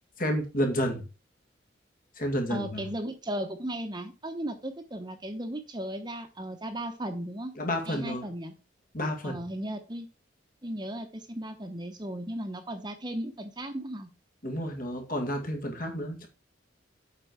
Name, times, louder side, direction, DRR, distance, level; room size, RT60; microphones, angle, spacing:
voice 1, 0.2-1.0 2.2-2.8 7.6-8.3 8.9-9.4 14.4-16.3, equal, 50° left, 2.1 m, -30 dB
voice 2, 2.5-7.5 7.9-8.5 9.2-10.1 10.6-14.1, right 1 dB, 25° right, 1.0 m, -36 dB
8.0 x 5.3 x 4.6 m
head